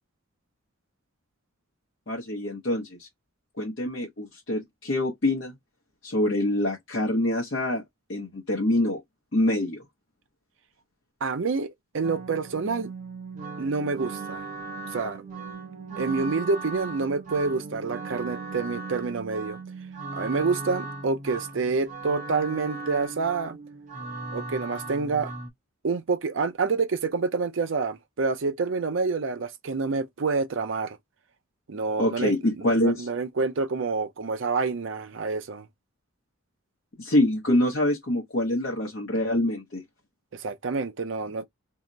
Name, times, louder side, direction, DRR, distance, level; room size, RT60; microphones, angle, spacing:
voice 1, 2.1-3.1 3.6-5.5 6.0-7.8 8.1-9.0 9.3-9.8 32.0-33.1 37.0-39.8, left 1 dB, 55° left, 0.8 m, -25 dB
voice 2, 11.2-12.9 13.6-14.4 14.9-15.2 16.0-19.6 20.1-23.6 24.3-25.3 25.8-31.0 31.7-35.7 40.3-41.5, right 4 dB, 65° right, 0.5 m, -28 dB
sound 1, 12.0-25.5, right 3 dB, 35° right, 0.8 m, -37 dB
2.8 x 2.1 x 3.7 m
head